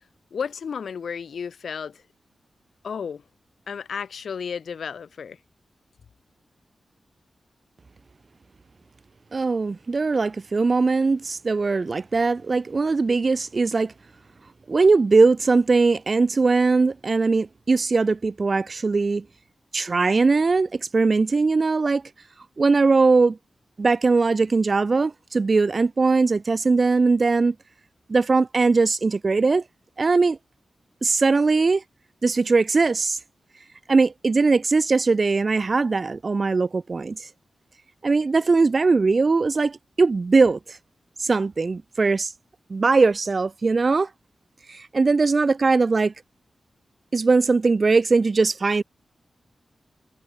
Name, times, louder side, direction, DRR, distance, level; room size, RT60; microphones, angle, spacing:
voice 1, 0.3-2.0 2.8-3.2 3.7-5.4, left 6 dB, 80° left, 1.0 m, -32 dB
voice 2, 9.3-13.9 14.7-19.2 19.7-22.0 22.6-23.4 23.8-27.5 28.1-29.6 30.0-30.4 31.0-31.8 32.2-33.2 33.9-37.2 38.0-40.8 41.2-42.3 42.7-44.1 44.7-46.1 47.1-48.8, right 4 dB, 45° right, 1.2 m, -20 dB
cardioid pair, 75°, 0 cm